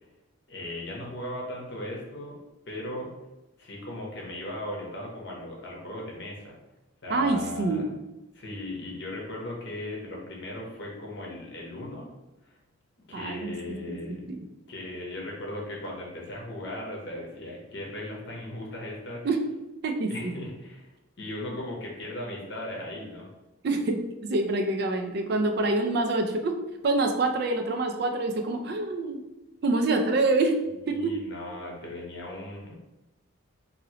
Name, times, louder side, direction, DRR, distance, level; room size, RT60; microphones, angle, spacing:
voice 1, 0.5-2.4 2.7-3.1 3.6-6.6 7.0-7.9 8.3-12.1 12.4-12.6 13.1-14.2 14.7-19.2 20.1-20.9 21.2-23.3 30.9-32.7, left 1 dB, 55° left, -2 dB, 0.8 m, -37 dB
voice 2, 7.1-7.9 13.1-14.0 14.3-14.4 19.2-19.4 19.8-20.3 23.6-26.6 26.8-29.2 29.6-30.6 30.9-31.1, right 2 dB, 50° right, 4 dB, 0.4 m, -26 dB
3.0 x 2.7 x 2.8 m, 0.98 s
head